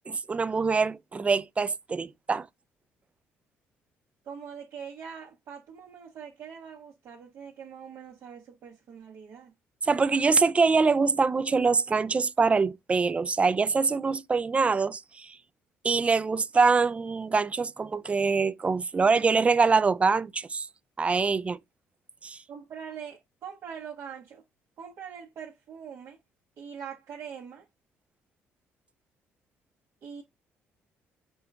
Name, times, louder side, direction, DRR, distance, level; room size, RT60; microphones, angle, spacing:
voice 1, 0.1-2.5 9.8-15.4 15.8-20.7 21.0-21.6 22.2-22.4, right 4 dB, 25° right, 0.4 m, -24 dB
voice 2, 4.2-9.5 22.5-24.4 24.8-26.2 26.6-27.6 30.0-30.2, right 7 dB, 65° right, 1.1 m, -43 dB
5.3 x 2.3 x 3.3 m
cardioid pair, 85°, 5 cm